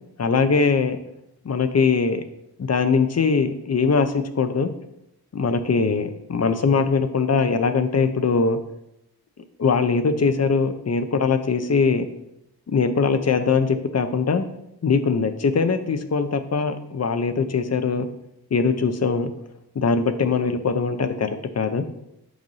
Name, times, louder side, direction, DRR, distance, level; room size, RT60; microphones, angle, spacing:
voice 1, 0.2-1.0 1.4-2.2 2.6-4.7 5.3-8.6 9.6-12.1 12.7-14.4 14.8-18.1 18.5-19.3 19.8-21.3 21.6-21.8, left 5 dB, 45° left, 9 dB, 0.6 m, -21 dB
7.8 x 2.6 x 5.5 m, 0.83 s
wide cardioid pair, 90°, 38 cm